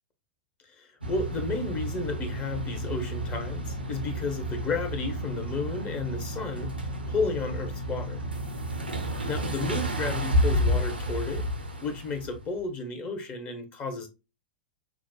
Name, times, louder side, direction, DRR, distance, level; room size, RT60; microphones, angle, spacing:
voice 1, 0.7-8.2 9.3-11.4 11.8-14.1, left 3 dB, 30° left, 0.8 m, -33 dB
sound 1, 1.0-12.4, equal, 85° right, 0.8 m, -31 dB
5.8 x 2.1 x 2.2 m
figure-of-eight pair, 100°, 5 cm